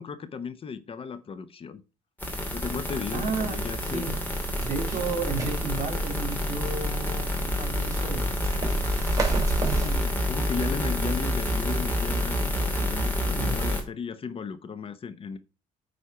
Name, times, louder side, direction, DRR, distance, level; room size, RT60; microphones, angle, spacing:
voice 1, 0.0-1.8 2.5-4.2 9.7-15.4, left 6 dB, 40° left, 0.8 m, -35 dB
sound 1, 2.2-13.8, left 1 dB, 10° left, 2.6 m, -28 dB
voice 2, 3.1-3.6 3.9-4.2 4.6-8.3 13.4-13.5, right 4 dB, 55° right, 3.4 m, -32 dB
sound 2, 3.2-10.0, right 4 dB, 25° right, 2.9 m, -33 dB
9.4 x 4.2 x 5.8 m
cardioid pair, 110°, 14 cm